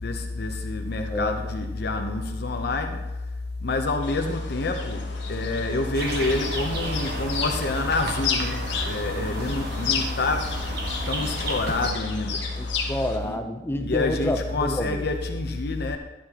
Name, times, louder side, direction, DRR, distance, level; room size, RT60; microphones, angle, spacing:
voice 1, 0.0-3.0 3.6-10.6 11.1-12.5 13.2-13.4 13.8-16.0, left 2 dB, 60° left, 4 dB, 0.8 m, -27 dB
sound 1, 4.0-13.2, left 5 dB, 80° left, 1.6 m, -33 dB
sound 2, 5.9-11.9, right 1 dB, 65° right, 1.5 m, -33 dB
voice 2, 12.6-15.0, left 1 dB, 15° left, 5 dB, 0.7 m, -28 dB
11.5 x 10.0 x 3.0 m, 1.0 s
head